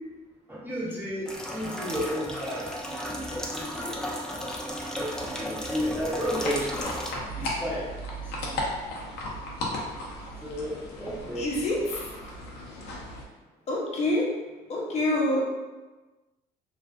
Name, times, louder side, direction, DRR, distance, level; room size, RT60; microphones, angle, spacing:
voice 1, 0.5-4.0 5.0-6.9 7.4-7.9 8.5-8.6 10.4-11.5, equal, 10° right, -6 dB, 0.8 m, -33 dB
sound 1, 1.3-7.1, equal, 5° left, 0.3 m, -34 dB
sound 2, 6.4-13.2, left 1 dB, 85° left, 0.5 m, -35 dB
voice 2, 11.4-12.1 13.7-14.3 14.7-15.4, left 1 dB, 40° left, -2 dB, 0.6 m, -27 dB
2.4 x 2.3 x 2.3 m, 1.2 s
cardioid pair, 110°, 17 cm